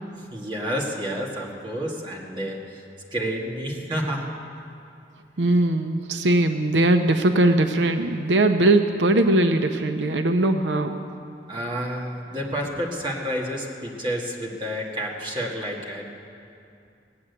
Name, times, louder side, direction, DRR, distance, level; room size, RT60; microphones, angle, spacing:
voice 1, 0.3-2.8 3.1-4.3 11.5-16.1, equal, 25° right, -2 dB, 2.0 m, -30 dB
voice 2, 5.4-11.0, right 2 dB, 90° right, 7 dB, 0.7 m, -20 dB
18.5 x 8.7 x 8.1 m, 2.5 s
head